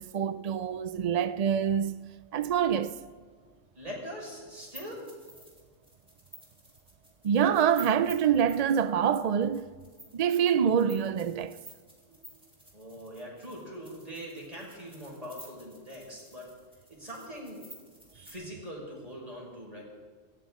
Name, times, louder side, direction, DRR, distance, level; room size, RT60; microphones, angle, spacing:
voice 1, 0.0-2.0 2.3-3.0 7.2-9.7 10.1-11.6, right 8 dB, 70° right, 0.3 m, -26 dB
voice 2, 3.8-5.0 12.1-12.2 12.7-16.5 16.9-17.6 18.1-19.8, equal, 30° right, 5.7 m, -42 dB
sound 1, 4.6-18.3, equal, 5° right, 4.1 m, -52 dB
28.5 x 13.5 x 3.7 m
omnidirectional pair, 1.3 m